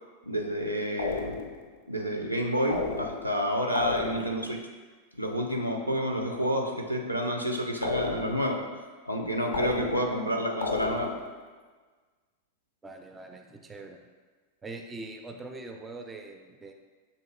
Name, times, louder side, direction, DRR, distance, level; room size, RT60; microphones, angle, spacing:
voice 1, 0.2-1.4 1.9-4.6 5.1-8.7 9.1-11.1, equal, 90° right, 2 dB, 0.4 m, -29 dB
sound 1, 1.0-1.7 2.7-3.4 3.8-4.5 7.8-8.6 9.5-10.3 10.6-11.3, left 4 dB, 65° left, 0.4 m, -33 dB
voice 2, 12.8-14.0 14.6-16.7, right 2 dB, 15° right, 4 dB, 0.3 m, -43 dB
6.2 x 2.8 x 2.3 m, 1.4 s
figure-of-eight pair, 90°, 0 cm